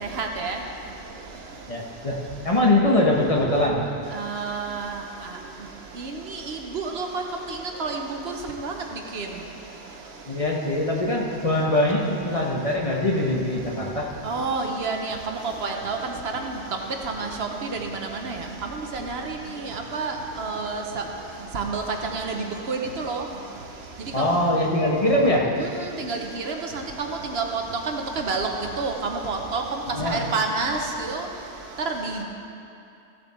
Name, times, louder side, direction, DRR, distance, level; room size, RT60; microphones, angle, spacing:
voice 1, 0.0-0.6 4.2-4.9 6.0-6.1 6.5-7.2 7.5-8.0 8.3-8.4 8.6-8.7 9.1-9.3 14.2-15.2 15.6-16.0 17.2-17.8 18.2-18.4 18.9-19.4 19.7-21.0 21.5-21.8 22.1-23.2 26.0-26.6 27.0-27.1 27.3-27.6 27.9-28.5 28.8-29.6 30.0-31.3 31.9-32.2, right 4 dB, 65° right, 3 dB, 1.1 m, -28 dB
voice 2, 1.7-2.2 2.4-3.8 10.3-14.1 24.1-25.5 29.9-30.2, left 1 dB, 30° left, -2 dB, 1.2 m, -22 dB
15.0 x 7.4 x 4.3 m, 2.7 s
omnidirectional pair, 1.2 m